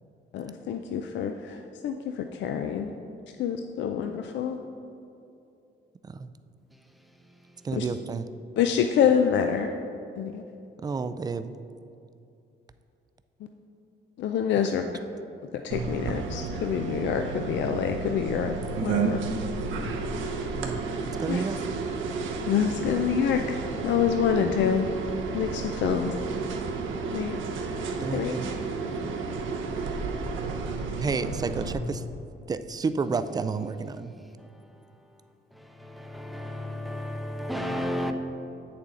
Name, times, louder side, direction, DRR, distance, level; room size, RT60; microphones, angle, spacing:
voice 1, 0.3-2.9 3.4-4.6 7.7-7.9 8.6-9.7 10.2-10.4 14.2-14.8 15.5-19.2 21.3-21.5 22.5-23.6 23.8-24.9 25.3-26.2 27.1-27.4 28.1-28.3, left 8 dB, 65° left, 0.4 m, -26 dB
voice 2, 7.6-8.2 10.8-11.5 20.6-20.8 21.2-21.6 28.0-28.4 31.0-32.0 32.5-34.1, right 4 dB, 20° right, 0.3 m, -30 dB
sound 1, 15.7-31.7, right 4 dB, 75° right, 0.8 m, -32 dB
voice 3, 36.0-38.1, left 1 dB, ahead, 0.7 m, -32 dB
8.2 x 6.9 x 3.8 m
cardioid pair, 90°, 20 cm